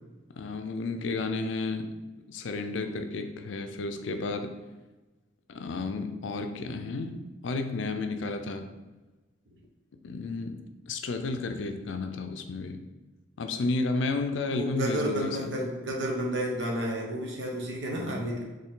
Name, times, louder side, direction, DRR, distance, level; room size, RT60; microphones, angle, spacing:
voice 1, 0.3-2.0 2.3-4.5 5.5-8.7 10.0-10.6 10.9-12.8 13.4-15.5 17.9-18.3, left 3 dB, 75° left, 7 dB, 0.5 m, -32 dB
voice 2, 14.5-18.4, right 1 dB, 70° right, -1 dB, 1.0 m, -31 dB
4.4 x 3.2 x 3.7 m, 1.2 s
head